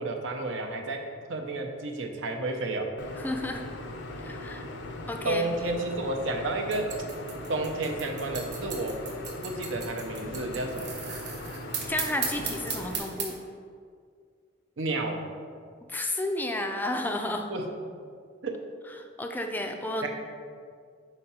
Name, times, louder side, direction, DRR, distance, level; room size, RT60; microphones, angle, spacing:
voice 1, 0.0-2.9 5.2-6.9 7.5-9.0 9.4-11.0 14.8-15.2 17.5-17.7 18.4-18.6 20.0-20.1, right 2 dB, 80° right, 3 dB, 0.7 m, -31 dB
sound 1, 3.0-13.0, left 1 dB, 65° left, 0.5 m, -39 dB
voice 2, 3.2-3.6 4.2-4.6 5.1-5.5 11.9-13.4 15.9-17.5 19.2-20.1, left 1 dB, 10° left, 4 dB, 0.3 m, -31 dB
sound 2, 6.7-13.4, right 6 dB, 65° right, 0.9 m, -36 dB
5.1 x 4.5 x 4.3 m, 2.1 s
head